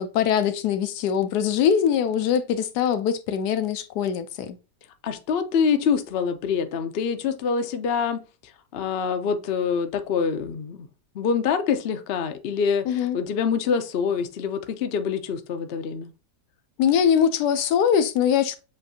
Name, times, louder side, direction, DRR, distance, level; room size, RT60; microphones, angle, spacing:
voice 1, 0.0-4.6 12.9-13.2 16.8-18.6, left 8 dB, 85° left, 1.2 m, -22 dB
voice 2, 5.0-10.9 11.1-16.1, left 6 dB, 60° left, 0.6 m, -25 dB
7.3 x 2.6 x 2.7 m
omnidirectional pair, 1.7 m